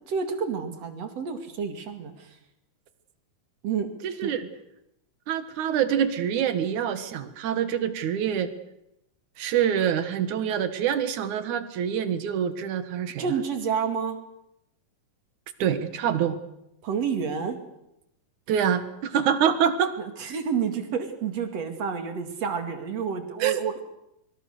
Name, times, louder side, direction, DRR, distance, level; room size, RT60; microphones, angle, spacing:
voice 1, 0.1-2.4 3.6-3.9 4.2-4.3 13.2-14.2 16.8-17.6 20.0-23.8, right 6 dB, 55° right, 7 dB, 3.3 m, -29 dB
voice 2, 4.0-4.5 5.3-8.5 9.4-13.3 15.6-16.4 18.5-19.9 23.4-23.6, right 8 dB, 70° right, 11 dB, 2.9 m, -25 dB
24.5 x 23.5 x 6.7 m, 0.83 s
omnidirectional pair, 3.6 m